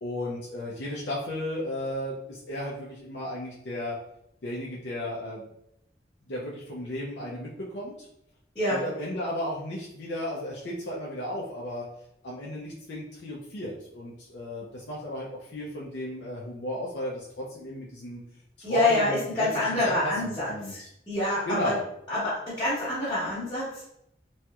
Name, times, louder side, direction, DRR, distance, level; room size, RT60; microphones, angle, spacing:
voice 1, 0.0-4.0 4.4-5.5 6.3-7.9 8.7-11.8 12.2-18.2 18.6-20.9 21.5-21.8, left 1 dB, 75° left, -5 dB, 0.5 m, -34 dB
voice 2, 18.6-20.8 21.1-21.8 22.1-23.8, left 1 dB, 25° left, -13 dB, 0.9 m, -26 dB
3.1 x 2.8 x 2.3 m, 0.78 s
head